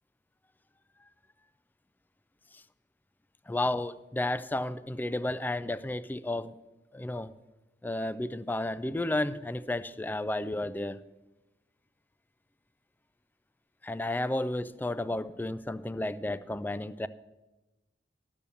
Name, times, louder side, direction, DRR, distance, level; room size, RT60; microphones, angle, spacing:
voice 1, 3.5-6.6 6.9-7.3 7.8-11.0 13.8-17.1, left 1 dB, 10° left, 15 dB, 0.3 m, -32 dB
12.0 x 7.0 x 6.9 m, 1.1 s
head